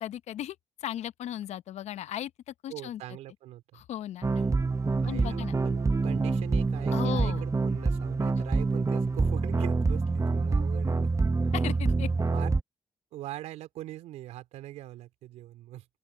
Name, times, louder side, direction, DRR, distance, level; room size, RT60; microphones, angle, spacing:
voice 1, 0.0-0.6 0.8-3.0 3.7-4.3 5.0-5.5 6.9-7.4 11.5-12.1, left 11 dB, 75° left, 0.8 m, -36 dB
voice 2, 2.7-3.8 4.3-4.7 5.0-11.1 12.3-12.5 13.1-15.9, right 14 dB, 80° right, 3.7 m, -42 dB
sound 1, 4.2-12.6, right 3 dB, 25° right, 0.9 m, -26 dB
open air
hypercardioid pair, 45°, 12 cm